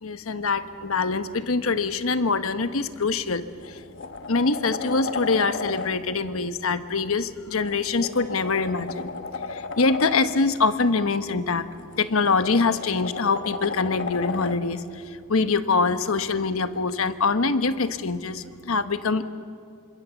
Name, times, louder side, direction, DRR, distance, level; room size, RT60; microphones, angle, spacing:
voice 1, 0.0-3.8 4.3-9.1 9.5-11.7 12.0-19.2, left 4 dB, 75° left, 10 dB, 1.1 m, -24 dB
sound 1, 3.0-3.2 3.6-5.9 7.6-10.3 11.8-14.6 16.9-17.0, left 4 dB, 55° left, 1.3 m, -34 dB
28.5 x 26.5 x 7.1 m, 2.3 s
head